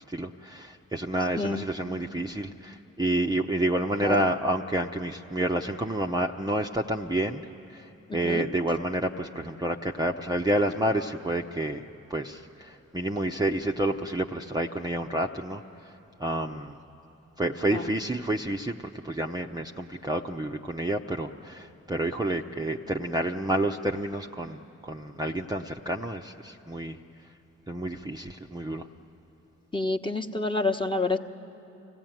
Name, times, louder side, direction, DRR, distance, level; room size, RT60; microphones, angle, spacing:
voice 1, 0.0-7.4 7.7-7.8 8.1-11.8 12.1-15.6 16.2-16.8 17.4-18.7 19.0-27.0 27.7-28.8, right 1 dB, 10° right, 1 dB, 0.8 m, -29 dB
voice 2, 8.1-8.4 17.7-17.9 29.7-31.2, left 3 dB, 15° left, 4 dB, 1.2 m, -28 dB
25.0 x 16.0 x 9.2 m, 3.0 s
hypercardioid pair, 40°, 36 cm